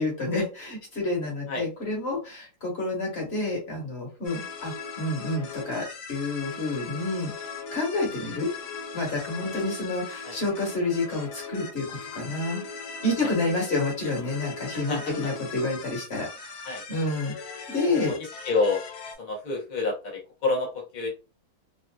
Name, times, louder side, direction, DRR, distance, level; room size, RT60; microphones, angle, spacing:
voice 1, 0.0-8.5 8.9-12.6 13.0-16.5 16.9-17.3 17.7-18.1, left 2 dB, 40° left, -1 dB, 1.4 m, -29 dB
sound 1, 4.2-19.1, left 5 dB, 65° left, 1.0 m, -39 dB
voice 2, 14.7-15.1 16.6-16.8 18.1-18.2 18.4-18.8 19.2-21.1, left 3 dB, 85° left, -1 dB, 0.4 m, -28 dB
3.3 x 2.6 x 2.3 m, 0.32 s
omnidirectional pair, 2.1 m